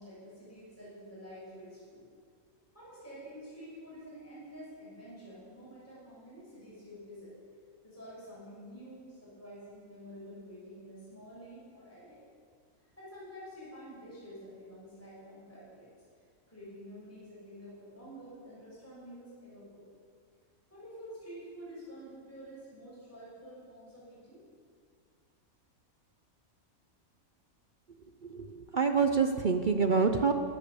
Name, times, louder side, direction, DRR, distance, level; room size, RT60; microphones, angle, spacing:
voice 1, 0.0-2.1 2.7-7.3 7.8-12.2 13.0-19.8 20.7-24.4, equal, 10° left, -8 dB, 5.9 m, -49 dB
voice 2, 28.2-30.3, right 5 dB, 45° right, 6 dB, 0.7 m, -27 dB
24.0 x 8.5 x 6.9 m, 2.1 s
omnidirectional pair, 1.5 m